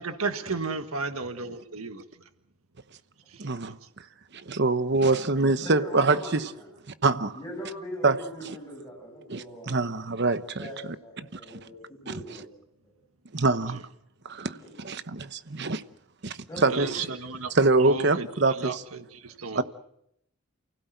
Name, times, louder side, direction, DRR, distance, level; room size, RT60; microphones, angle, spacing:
voice 1, 0.0-2.0 3.3-3.7 16.3-16.4 16.7-17.5 17.9-18.3 18.6-19.6, right 4 dB, 75° right, 1.7 m, -34 dB
voice 2, 3.4-3.8 4.3-6.4 7.0-7.4 8.0-8.2 8.4-8.6 9.3-10.7 11.3-11.6 12.1-12.2 13.3-13.8 14.2-15.8 16.2-17.0 17.5-18.8 19.5-19.6, right 3 dB, 50° right, 1.0 m, -25 dB
voice 3, 5.6-6.7 7.3-9.8 10.6-12.5 14.5-14.7 16.5-17.0, equal, 15° left, 7.5 m, -40 dB
29.0 x 16.5 x 8.0 m
head